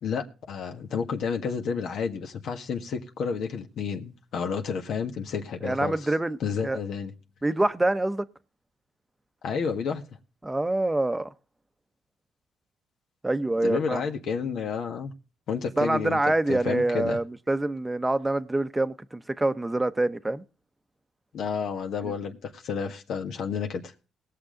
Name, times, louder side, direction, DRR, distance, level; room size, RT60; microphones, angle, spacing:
voice 1, 0.0-5.9 6.4-7.1 9.4-10.0 13.6-15.1 15.5-16.2 16.5-17.2 21.3-23.9, left 6 dB, 70° left, 1.6 m, -30 dB
voice 2, 5.6-6.8 7.4-8.2 10.4-11.3 13.2-14.0 15.8-20.4 22.0-22.1, right 2 dB, 15° right, 0.8 m, -26 dB
20.0 x 6.9 x 3.8 m
cardioid pair, 90°, 0 cm